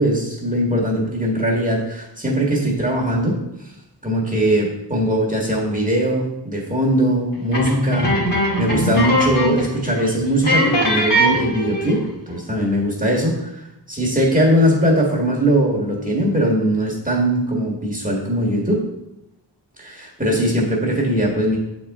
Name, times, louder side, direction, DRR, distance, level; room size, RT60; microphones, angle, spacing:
voice 1, 0.0-3.3 4.0-8.1 8.6-12.0 12.3-18.8 19.8-21.6, right 1 dB, 20° right, -3 dB, 1.7 m, -20 dB
sound 1, 7.5-9.7 10.0-10.1 10.4-12.1, equal, 70° left, 2.2 m, -20 dB
6.8 x 4.3 x 3.6 m, 0.87 s
wide cardioid pair, 45°, 43 cm